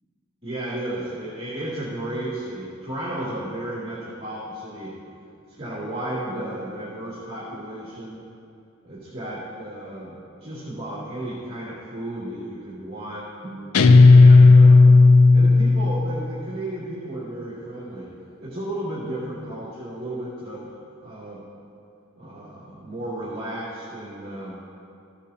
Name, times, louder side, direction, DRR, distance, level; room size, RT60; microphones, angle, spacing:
voice 1, 0.4-4.9 5.6-8.2 8.8-14.8 15.3-18.1 18.4-20.7 21.0-21.5 22.2-24.5, right 1 dB, 30° right, -12 dB, 2.5 m, -33 dB
Guitar, 13.7-16.3, left 3 dB, 85° left, 0.4 m, -12 dB
15.5 x 8.9 x 2.8 m, 2.5 s
head